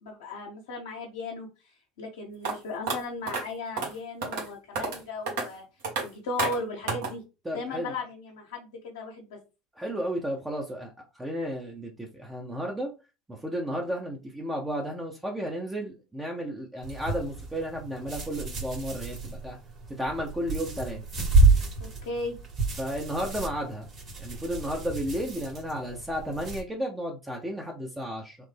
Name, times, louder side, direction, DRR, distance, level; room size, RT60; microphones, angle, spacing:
voice 1, 0.0-1.5 2.0-5.6 6.0-7.2 7.5-9.4 21.8-22.3, left 3 dB, 70° left, -2 dB, 0.8 m, -36 dB
sound 1, 2.4-2.5 2.9-3.0 3.3-3.4 3.8-3.9 4.2-4.5 4.8-5.0 5.3-5.4 5.8-6.0 6.4-6.6 6.9-7.1, right 4 dB, 65° right, 1.3 m, -29 dB
voice 2, 7.4-7.9 9.8-12.9 13.3-19.6 19.9-21.0 22.8-23.9 24.2-28.4, equal, 10° right, 0 dB, 0.7 m, -33 dB
sound 2, 16.8-26.6, right 3 dB, 35° right, 1.6 m, -29 dB
3.2 x 2.0 x 3.3 m, 0.29 s
figure-of-eight pair, 75°, 0 cm